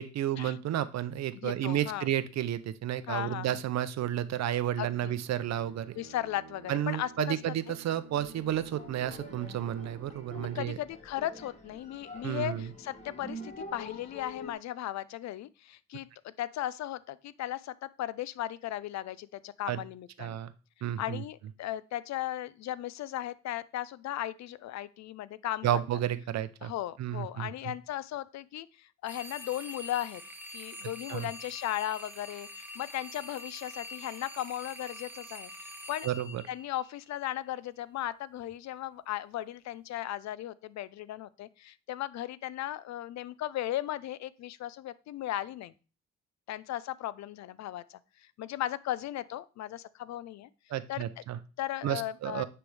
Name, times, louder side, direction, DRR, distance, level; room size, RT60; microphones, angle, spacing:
voice 1, 0.0-6.0 6.7-10.8 12.2-12.7 19.7-19.8 20.2-20.5 20.8-21.2 25.6-26.7 27.0-27.7 31.1-31.3 36.0-36.4 50.7-51.4 51.8-52.4, right 11 dB, 60° right, 13 dB, 0.6 m, -32 dB
voice 2, 1.3-2.1 3.1-3.6 4.8-5.1 6.0-7.4 7.7-7.8 10.5-20.4 21.0-25.7 26.6-30.2 30.5-36.1 36.5-45.7 46.5-48.0 48.4-50.5 50.9-51.0 51.6-52.4, left 13 dB, 65° left, 18 dB, 0.5 m, -36 dB
Bowed string instrument, 5.1-11.1, right 7 dB, 45° right, 1.0 m, -51 dB
sound 1, 8.1-14.5, left 1 dB, 20° left, 1.4 m, -46 dB
sound 2, 29.0-37.2, left 1 dB, 5° right, 0.9 m, -45 dB
9.4 x 3.4 x 3.3 m, 0.35 s
cardioid pair, 90°, 30 cm